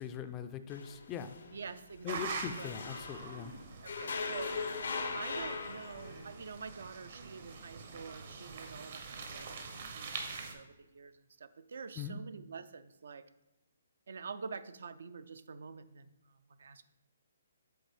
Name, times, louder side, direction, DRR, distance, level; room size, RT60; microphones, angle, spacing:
voice 1, 0.0-1.3 2.0-3.5 12.0-12.2, left 8 dB, 20° left, 10 dB, 0.3 m, -41 dB
sound 1, 0.7-3.5 3.9-6.3, left 4 dB, 75° left, 0.6 m, -40 dB
voice 2, 1.5-2.7 3.8-4.5 5.1-13.2 14.1-16.8, right 5 dB, 70° right, 12 dB, 0.4 m, -47 dB
sound 2, 2.1-10.5, right 4 dB, 55° right, 0.8 m, -45 dB
7.8 x 3.7 x 3.3 m, 1.0 s
hypercardioid pair, 145°, 0 cm